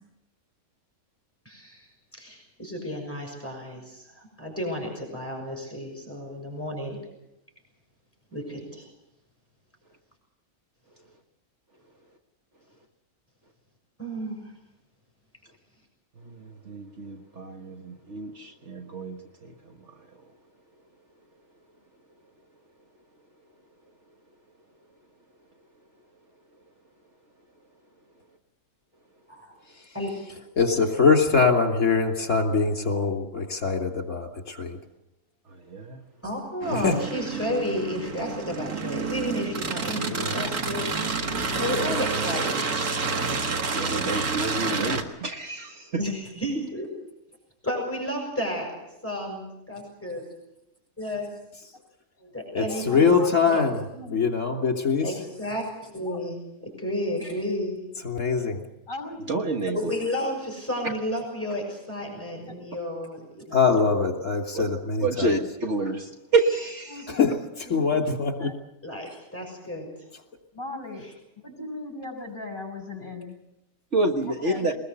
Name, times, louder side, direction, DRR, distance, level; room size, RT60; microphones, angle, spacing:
voice 1, 1.4-1.9 2.1-7.0 8.3-8.9 14.0-14.5 29.3-29.5 29.9-30.1 36.2-40.9 41.6-42.6 46.0-46.9 47.6-50.2 51.0-51.3 52.3-53.1 53.4-53.6 55.0-56.4 56.6-57.8 59.7-63.7 68.8-69.9, equal, 10° left, 0 dB, 6.2 m, -32 dB
voice 2, 16.2-19.9 35.5-36.0 43.7-46.0 59.3-59.9 64.5-64.6 65.0-67.1 73.9-74.7, right 3 dB, 55° right, 3 dB, 1.7 m, -28 dB
voice 3, 30.6-34.8 36.7-36.9 40.1-40.4 52.5-53.8 54.1-55.1 58.1-58.6 63.5-65.3 67.1-67.3 67.7-68.5, left 5 dB, 55° left, 3 dB, 3.3 m, -23 dB
sound 1, 36.6-45.0, right 4 dB, 85° right, 2.3 m, -29 dB
voice 4, 52.7-53.4 53.9-54.2 56.0-56.2 58.9-59.2 62.5-62.6 66.9-67.1 67.6-67.9 68.4-68.6 70.5-71.1 71.4-73.4 74.2-74.7, left 2 dB, 35° left, 4 dB, 5.9 m, -38 dB
22.5 x 21.0 x 6.9 m, 0.89 s
omnidirectional pair, 1.5 m